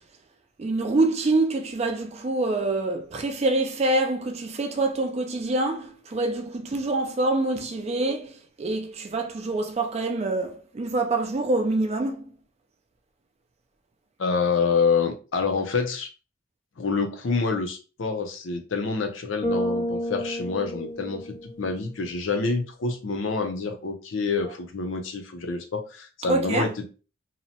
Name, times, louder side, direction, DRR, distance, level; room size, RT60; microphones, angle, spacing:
voice 1, 0.6-12.3 26.3-26.7, right 2 dB, 30° right, 0.3 m, -26 dB
voice 2, 14.2-16.1 16.8-26.7, left 4 dB, 65° left, 0.5 m, -27 dB
Bass guitar, 19.4-21.8, equal, 20° left, 0.5 m, -30 dB
2.7 x 2.1 x 2.7 m
head